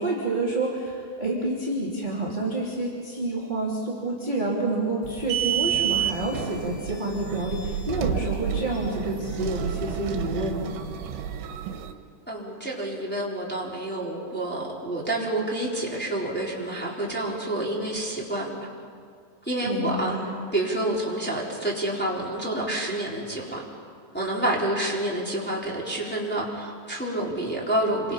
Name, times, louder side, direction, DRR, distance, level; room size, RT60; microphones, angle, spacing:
voice 1, 0.0-10.8 19.6-20.3, right 2 dB, 15° right, -5 dB, 2.4 m, -28 dB
sound 1, 5.0-11.9, right 9 dB, 85° right, 3.7 m, -30 dB
voice 2, 12.3-18.5 19.4-20.2 20.5-23.6 24.1-28.1, right 1 dB, ahead, -5 dB, 3.4 m, -28 dB
27.5 x 26.0 x 5.7 m, 2.2 s
omnidirectional pair, 5.2 m